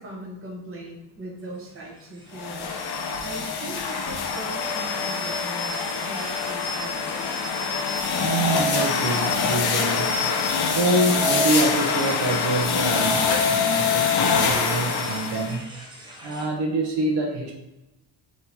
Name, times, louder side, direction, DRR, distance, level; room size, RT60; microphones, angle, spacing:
voice 1, 0.0-2.8 3.2-7.3, right 1 dB, 30° right, -2 dB, 1.0 m, -39 dB
sound 1, 1.4-16.5, equal, 10° right, 0.6 m, -44 dB
sound 2, 2.3-15.6, left 5 dB, 55° left, 0.6 m, -24 dB
voice 2, 8.2-10.4 10.7-15.7 16.2-17.5, right 2 dB, 65° right, 0 dB, 0.8 m, -26 dB
3.7 x 2.9 x 4.1 m, 0.99 s
wide cardioid pair, 175°, 46 cm